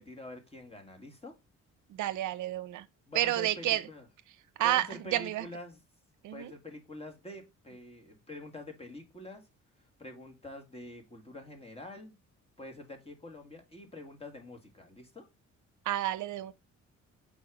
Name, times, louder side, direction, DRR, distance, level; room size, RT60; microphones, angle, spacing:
voice 1, 0.0-1.4 3.1-4.1 4.6-5.8 6.3-9.5 10.0-12.2 12.6-15.2, left 1 dB, 20° left, 1.9 m, -46 dB
voice 2, 1.9-2.9 3.1-3.8 4.6-5.5 6.2-6.5 15.9-16.5, right 14 dB, 75° right, 0.5 m, -30 dB
4.7 x 4.2 x 4.8 m
cardioid pair, 90°, 30 cm